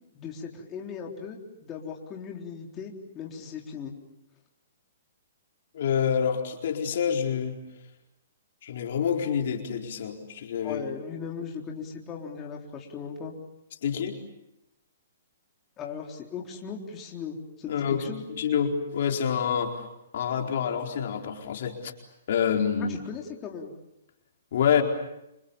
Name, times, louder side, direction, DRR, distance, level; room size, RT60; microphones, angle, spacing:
voice 1, 0.1-3.9 10.6-13.3 15.8-18.2 22.8-23.7, left 6 dB, 20° left, 0 dB, 3.9 m, -38 dB
voice 2, 5.7-7.6 8.6-10.8 13.8-14.2 17.7-19.8 20.1-21.9 22.3-23.0 24.5-24.8, left 7 dB, 60° left, 2 dB, 4.4 m, -27 dB
30.0 x 27.5 x 7.2 m, 0.87 s
hypercardioid pair, 140°, 0 cm